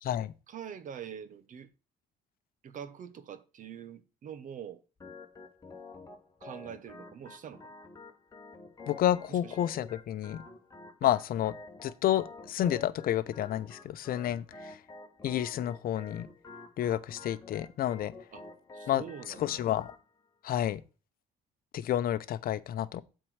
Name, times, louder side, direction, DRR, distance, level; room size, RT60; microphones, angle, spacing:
voice 1, 0.5-1.7 2.6-4.8 6.4-7.7 9.3-9.6 11.0-11.1 18.3-18.5 18.7-19.6, right 8 dB, 50° right, 1.1 m, -44 dB
Organ, 5.0-20.0, left 3 dB, 20° left, 1.7 m, -49 dB
voice 2, 8.9-10.4 11.0-11.5 11.8-14.8 15.2-16.3 16.8-18.1 18.9-19.0 19.4-19.9 20.4-20.8 21.7-23.0, left 11 dB, 60° left, 0.7 m, -30 dB
7.7 x 4.5 x 6.3 m
cardioid pair, 110°, 17 cm